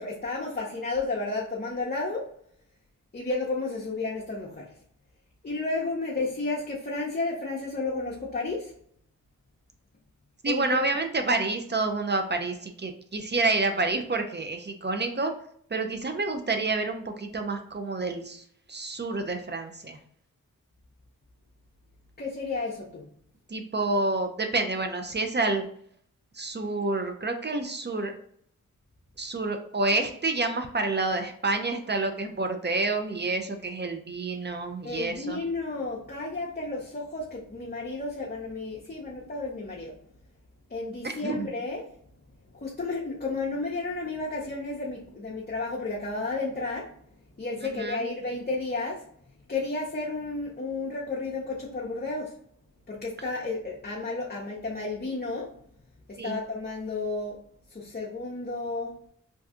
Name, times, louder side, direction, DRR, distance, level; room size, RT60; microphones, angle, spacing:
voice 1, 0.0-2.3 3.1-4.8 5.4-8.7 10.4-10.9 22.2-23.1 34.8-40.0 40.7-41.9 42.5-47.0 47.4-49.1 49.5-52.4 52.9-55.5 56.1-57.4 57.7-59.0, left 3 dB, 30° left, -4 dB, 0.7 m, -32 dB
voice 2, 10.4-15.3 15.7-20.0 23.5-25.6 26.4-28.1 29.2-35.4 41.0-41.5 47.7-48.0 56.2-56.4, right 3 dB, 30° right, 5 dB, 0.5 m, -28 dB
2.7 x 2.3 x 3.5 m, 0.64 s
cardioid pair, 40°, 33 cm